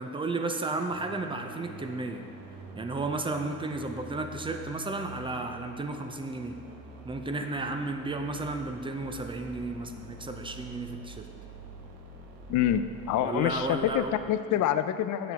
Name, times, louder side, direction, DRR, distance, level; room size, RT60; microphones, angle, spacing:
voice 1, 0.0-2.2 2.8-6.6 7.0-11.3 13.2-14.2, right 2 dB, 15° right, 5 dB, 0.5 m, -33 dB
sound 1, 0.9-14.3, right 3 dB, 80° right, 1.2 m, -46 dB
voice 2, 12.5-15.3, left 10 dB, 60° left, 12 dB, 0.5 m, -27 dB
8.1 x 6.3 x 4.5 m, 2.7 s
cardioid pair, 120°, 34 cm